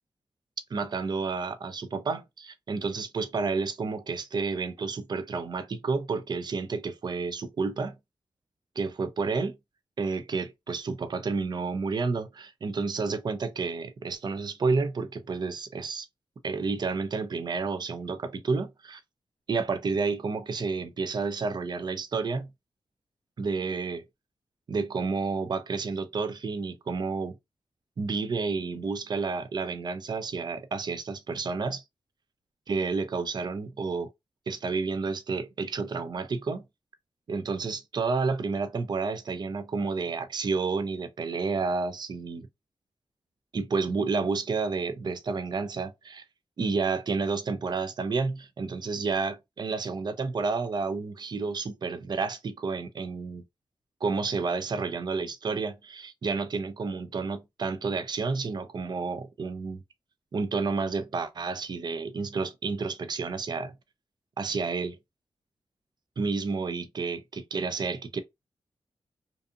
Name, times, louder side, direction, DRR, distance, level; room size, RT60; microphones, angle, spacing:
voice 1, 0.7-8.0 8.8-9.6 10.0-16.1 16.4-19.0 19.5-22.5 23.4-24.0 24.7-27.3 28.0-31.8 32.7-34.1 34.5-36.6 37.3-42.5 43.5-46.2 46.6-53.4 54.0-59.8 60.3-63.7 64.4-65.0 66.2-68.2, right 4 dB, 50° right, 0.4 m, -30 dB
2.6 x 2.4 x 2.5 m
cardioid pair, 70°, 9 cm